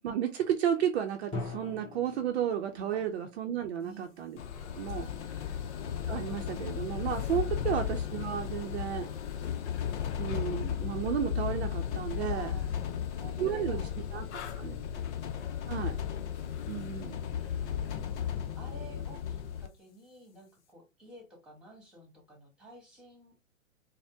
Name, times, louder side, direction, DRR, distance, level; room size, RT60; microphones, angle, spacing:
voice 1, 0.0-4.4 4.7-5.1 6.1-9.1 10.2-12.5 13.4-13.8 14.1-14.3 14.6-14.8 15.7-16.0 16.7-17.2, right 9 dB, 55° right, 0.6 m, -32 dB
Drum, 1.3-3.2, left 3 dB, 15° left, 1.8 m, -41 dB
voice 2, 3.8-4.1 12.3-15.1 17.2-23.3, right 1 dB, ahead, 1.5 m, -52 dB
sound 1, 4.4-19.7, left 9 dB, 60° left, 0.7 m, -35 dB
4.3 x 2.1 x 3.4 m
figure-of-eight pair, 110°, 40 cm